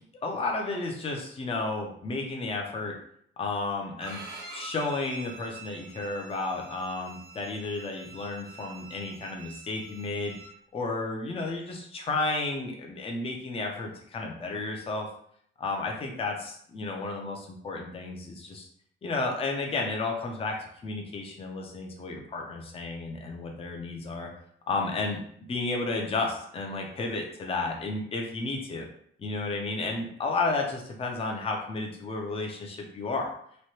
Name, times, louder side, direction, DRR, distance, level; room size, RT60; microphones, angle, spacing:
voice 1, 0.1-2.9 3.4-4.2 4.5-10.4 10.7-15.1 15.6-18.7 19.0-20.5 20.8-24.3 24.7-25.2 25.5-28.9 29.2-33.3, left 3 dB, 30° left, 1 dB, 0.6 m, -32 dB
Bowed string instrument, 4.0-10.5, right 5 dB, 85° right, 0.8 m, -45 dB
3.1 x 2.2 x 2.9 m, 0.65 s
cardioid pair, 90°, 20 cm